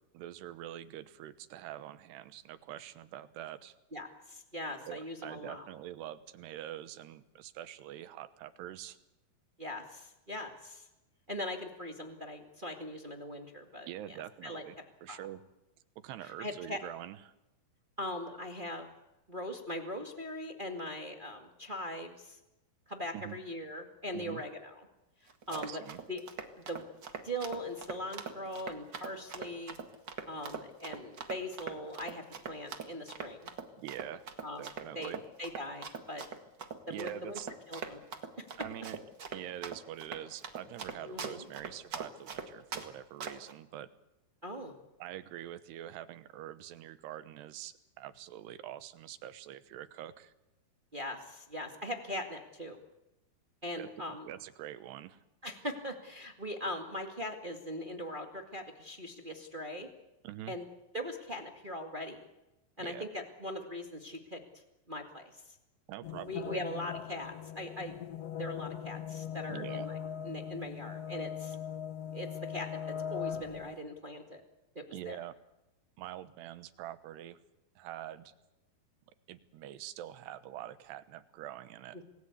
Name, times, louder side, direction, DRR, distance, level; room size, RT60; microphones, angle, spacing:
voice 1, 0.1-3.7 4.9-9.0 13.9-14.8 15.0-15.4 16.0-17.3 23.1-23.4 24.1-24.4 25.5-26.0 33.8-34.2 34.6-35.2 36.9-37.5 38.6-39.0 39.3-43.9 45.0-50.3 53.8-55.2 60.2-60.6 62.8-63.1 65.9-66.6 69.5-69.9 74.9-75.3 76.0-77.4 77.8-78.3 79.3-82.0, right 12 dB, 85° right, 12 dB, 3.2 m, -45 dB
voice 2, 3.9-5.7 9.6-10.9 11.3-14.2 14.4-14.6 15.1-15.2 16.2-16.8 18.0-18.9 19.3-22.4 22.9-24.8 25.2-25.8 26.1-26.2 26.6-26.8 27.2-29.8 30.3-33.5 34.4-34.7 34.9-35.1 35.4-36.2 36.9-37.4 37.7-38.0 38.4-38.5 41.0-41.5 44.4-44.8 50.9-52.8 53.6-54.3 55.4-59.9 60.5-60.6 60.9-62.3 62.8-64.4 64.9-65.6 66.3-67.9 68.3-70.0 70.2-71.6 72.1-74.4 74.7-75.2 81.9-82.0, left 1 dB, 25° right, 3 dB, 1.0 m, -40 dB
Run, 25.3-42.9 43.2-43.5, right 6 dB, 45° right, 1.4 m, -42 dB
sound 1, 66.0-73.8, left 8 dB, 80° left, 1.4 m, -40 dB
28.0 x 19.5 x 8.4 m, 0.97 s
omnidirectional pair, 4.7 m